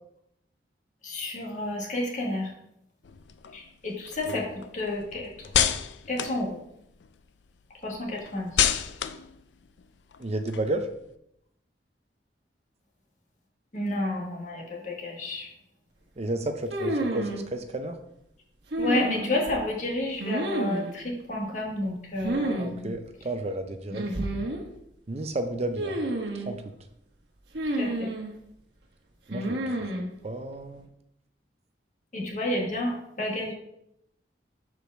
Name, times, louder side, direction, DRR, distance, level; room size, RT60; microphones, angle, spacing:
voice 1, 1.0-2.5 3.5-5.5 6.1-6.6 7.8-8.7 13.7-15.5 18.8-22.9 23.9-24.0 27.8-28.1 32.1-33.5, left 1 dB, 45° left, -2 dB, 1.8 m, -31 dB
sound 1, 3.0-7.2 7.6-11.1, left 9 dB, 80° left, 0.4 m, -31 dB
voice 2, 10.2-10.9 16.2-17.9 22.6-24.4 25.1-26.0 26.5-26.6 29.3-29.8 30.2-30.9, right 2 dB, 35° right, 7 dB, 0.5 m, -32 dB
sound 2, 16.7-17.4 18.7-19.5 20.2-20.9 22.2-22.7 22.9-23.0 23.9-24.6 25.8-26.5 27.5-28.3 29.3-30.1, right 1 dB, 70° right, 1.2 m, -29 dB
5.0 x 4.8 x 6.2 m, 0.79 s
head